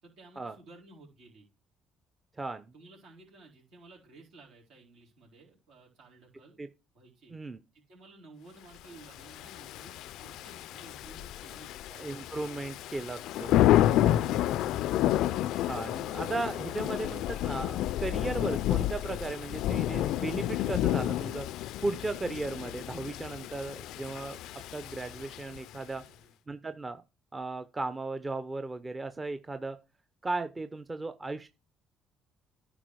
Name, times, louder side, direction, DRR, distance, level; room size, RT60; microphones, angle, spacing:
voice 1, 0.0-1.5 2.7-6.6 6.9-7.3 7.7-11.7 14.2-14.5 25.9-26.3, right 3 dB, 75° right, 4.3 m, -54 dB
voice 2, 2.4-2.7 6.6-6.7 7.3-7.6 11.9-13.8 15.6-21.5 21.8-24.4 24.7-26.0 26.5-27.0 27.3-29.8 30.2-31.5, right 2 dB, 25° right, 0.8 m, -36 dB
Thunder / Rain, 9.2-25.8, left 13 dB, 75° left, 0.3 m, -30 dB
10.0 x 4.6 x 4.7 m
supercardioid pair, 70°, 0 cm